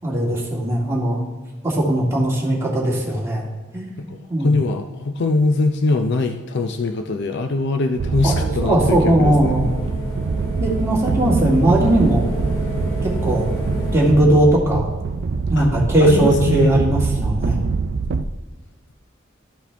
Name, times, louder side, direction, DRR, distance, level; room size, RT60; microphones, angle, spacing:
voice 1, 0.0-1.2 1.6-3.5 3.7-3.9 4.3-4.6 8.2-9.7 10.6-12.2 13.0-13.5 13.9-14.8 15.5-17.6, right 1 dB, 15° right, -4 dB, 1.9 m, -18 dB
voice 2, 4.0-9.7 15.6-15.7 16.0-16.8, left 3 dB, 60° left, 6 dB, 0.5 m, -22 dB
sound 1, 8.0-14.1, equal, 75° left, 2.0 m, -31 dB
sound 2, 8.0-18.2, right 4 dB, 55° right, 0.4 m, -24 dB
13.5 x 4.9 x 3.4 m, 1.2 s
head